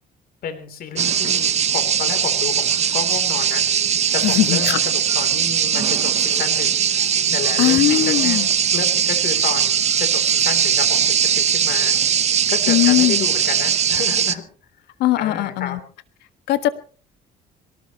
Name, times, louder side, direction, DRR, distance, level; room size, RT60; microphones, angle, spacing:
voice 1, 0.4-3.6 4.1-6.8 7.3-8.4 8.7-12.0 12.5-14.4 15.2-15.8, left 7 dB, 60° left, 9 dB, 3.3 m, -30 dB
sound 1, 1.0-14.3, right 8 dB, 40° right, 0.9 m, -20 dB
voice 2, 4.2-4.8 7.6-8.5 12.7-13.3 15.0-15.8 16.5-16.7, left 15 dB, 85° left, 11 dB, 1.6 m, -19 dB
22.5 x 19.0 x 3.0 m, 0.39 s
cardioid pair, 110°, 17 cm